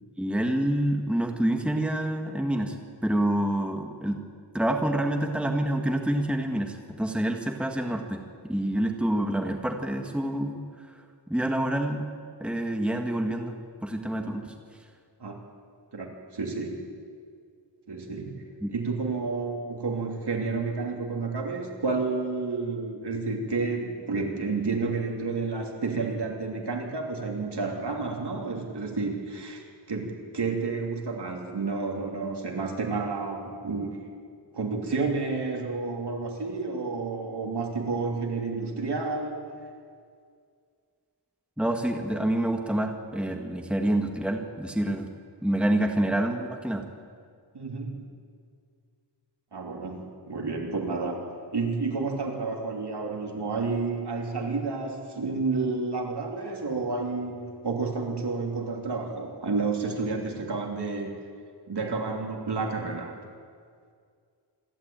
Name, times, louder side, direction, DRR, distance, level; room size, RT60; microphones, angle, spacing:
voice 1, 0.2-2.7 3.0-4.2 4.5-10.6 11.3-12.1 12.4-13.5 13.8-14.5 18.6-18.7 41.6-45.1 45.4-46.8, right 1 dB, 5° right, 3 dB, 1.6 m, -27 dB
voice 2, 15.9-16.9 17.9-34.0 34.5-39.4 47.5-48.1 49.5-61.2 61.7-63.2, right 4 dB, 65° right, 1 dB, 3.2 m, -30 dB
26.5 x 12.0 x 8.8 m, 2.1 s
wide cardioid pair, 120°, 43 cm